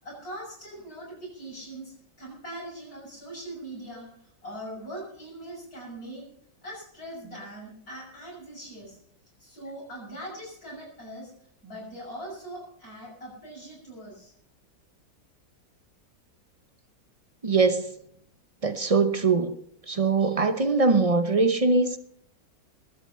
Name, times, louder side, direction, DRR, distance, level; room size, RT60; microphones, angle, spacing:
voice 1, 0.0-4.1 4.4-6.2 6.6-9.0 9.4-11.3 11.6-14.3, right 1 dB, 50° left, 6.8 m, -41 dB
voice 2, 17.4-17.9 18.6-19.5 19.9-22.0, right 3 dB, 65° right, 0.3 m, -22 dB
20.5 x 8.8 x 5.6 m
omnidirectional pair, 2.0 m